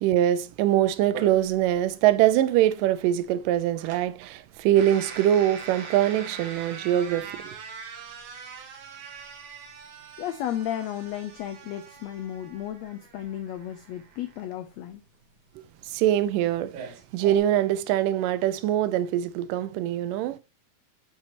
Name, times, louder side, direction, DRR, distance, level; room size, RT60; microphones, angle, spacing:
voice 1, 0.0-7.6 15.9-20.4, right 12 dB, 90° right, 2.2 m, -23 dB
sound 1, 1.1-17.4, right 6 dB, 65° right, 2.6 m, -43 dB
voice 2, 10.2-15.0, left 11 dB, 90° left, 1.5 m, -34 dB
8.9 x 5.3 x 2.9 m
omnidirectional pair, 3.8 m